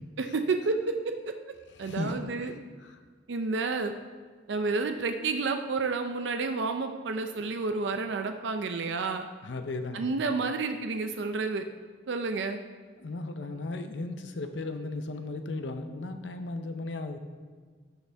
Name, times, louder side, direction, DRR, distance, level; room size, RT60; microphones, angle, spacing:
voice 1, 0.2-1.3 1.8-2.5 3.3-3.9 4.5-9.3 9.9-11.7 12.1-12.6, right 4 dB, 75° right, 6 dB, 0.5 m, -30 dB
voice 2, 1.8-2.2 2.8-3.0 9.4-10.1 13.0-17.2, left 2 dB, 75° left, 7 dB, 0.7 m, -36 dB
11.5 x 6.8 x 3.4 m, 1.5 s
head